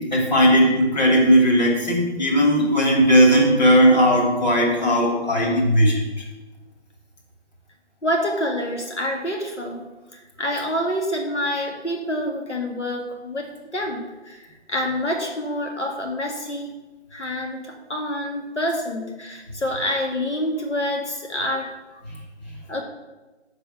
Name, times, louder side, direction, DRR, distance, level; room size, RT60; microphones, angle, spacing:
voice 1, 0.0-6.0, equal, 40° left, -3 dB, 2.5 m, -17 dB
voice 2, 8.0-16.7 17.1-22.0 22.7-22.8, left 1 dB, 90° left, 1 dB, 2.0 m, -27 dB
6.7 x 5.9 x 7.4 m, 1.2 s
figure-of-eight pair, 165°, 34 cm